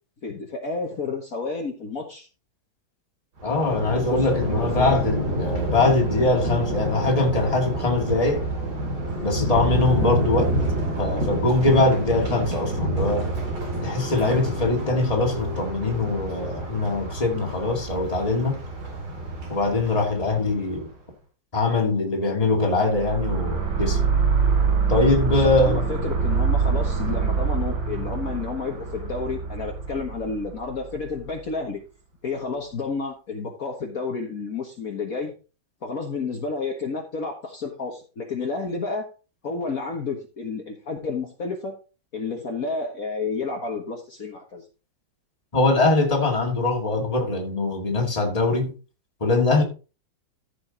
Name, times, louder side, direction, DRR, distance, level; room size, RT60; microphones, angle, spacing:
voice 1, 0.2-2.3 3.9-4.2 4.5-5.0 25.3-31.8 32.2-35.3 35.8-39.0 39.4-41.7 42.1-44.6, left 4 dB, 50° left, 1.7 m, -31 dB
voice 2, 3.4-8.5 9.2-10.6 11.0-13.3 13.8-18.6 19.5-20.9 21.5-24.0 24.9-25.9 45.5-48.7 49.2-49.6, left 3 dB, 20° left, 2.0 m, -22 dB
Thunder, 3.4-20.8, right 1 dB, 55° right, 2.8 m, -28 dB
sound 1, 9.0-17.0, left 1 dB, 10° right, 1.4 m, -38 dB
sound 2, 22.9-31.2, right 5 dB, 90° right, 4.9 m, -24 dB
14.5 x 5.2 x 3.9 m
omnidirectional pair, 2.1 m